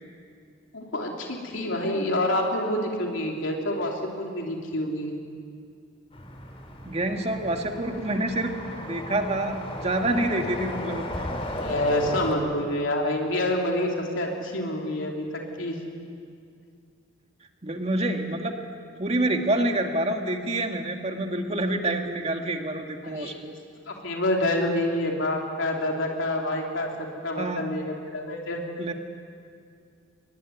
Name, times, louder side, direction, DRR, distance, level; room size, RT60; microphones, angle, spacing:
voice 1, 0.7-5.1 11.6-15.2 15.6-15.8 23.1-23.3 23.9-26.9 27.2-28.6, left 1 dB, 80° left, 0 dB, 3.2 m, -27 dB
sound 1, 6.1-12.3, left 1 dB, 30° left, 3.1 m, -36 dB
voice 2, 6.9-11.3 17.6-18.6 19.0-23.5 27.4-27.6 28.8-28.9, right 1 dB, 35° right, 4 dB, 2.0 m, -27 dB
Explosion, 11.1-13.0, equal, ahead, 5.8 m, -41 dB
24.0 x 21.0 x 9.4 m, 2.3 s
head